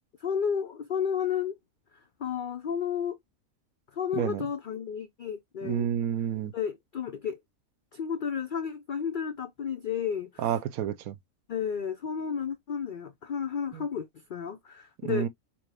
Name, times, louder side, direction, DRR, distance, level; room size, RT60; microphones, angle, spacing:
voice 1, 0.2-1.5 2.2-3.2 3.9-5.9 6.5-7.4 7.9-10.5 11.5-15.3, left 7 dB, 85° left, 0.4 m, -32 dB
voice 2, 5.6-6.5 10.4-11.1 13.7-13.8 15.0-15.3, right 9 dB, 80° right, 1.1 m, -29 dB
5.9 x 2.1 x 3.4 m
omnidirectional pair, 1.5 m